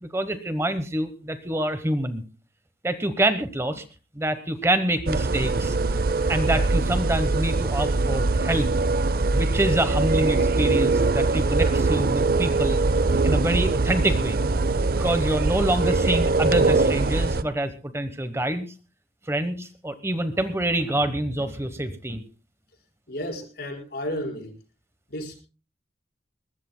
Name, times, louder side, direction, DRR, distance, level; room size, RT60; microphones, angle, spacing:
voice 1, 0.0-2.2 2.8-3.8 4.1-8.7 9.3-12.8 13.2-14.4 15.0-18.7 19.3-22.2, right 1 dB, 15° right, 10 dB, 1.0 m, -26 dB
sound 1, 5.1-17.4, right 3 dB, 55° right, 0.6 m, -22 dB
voice 2, 23.1-24.5 25.1-25.4, equal, 60° left, 1 dB, 5.2 m, -32 dB
22.0 x 20.0 x 2.2 m, 0.33 s
head